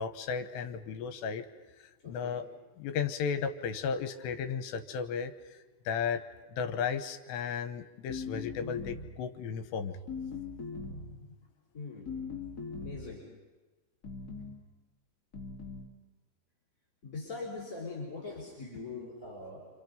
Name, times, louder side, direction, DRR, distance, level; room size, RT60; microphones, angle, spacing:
voice 1, 0.0-1.5 2.1-2.5 2.8-5.6 5.9-6.2 6.5-10.0, left 6 dB, 80° left, 9 dB, 3.2 m, -34 dB
voice 2, 2.0-2.4 10.7-11.3 11.7-12.1 12.8-13.2 17.0-19.7, left 3 dB, 20° left, -4 dB, 4.4 m, -42 dB
sound 1, 8.1-9.2 10.1-11.2 12.1-13.2 14.0-14.6 15.3-15.9, left 4 dB, 35° left, 1.5 m, -40 dB
27.5 x 27.0 x 5.3 m, 1.2 s
omnidirectional pair, 5.1 m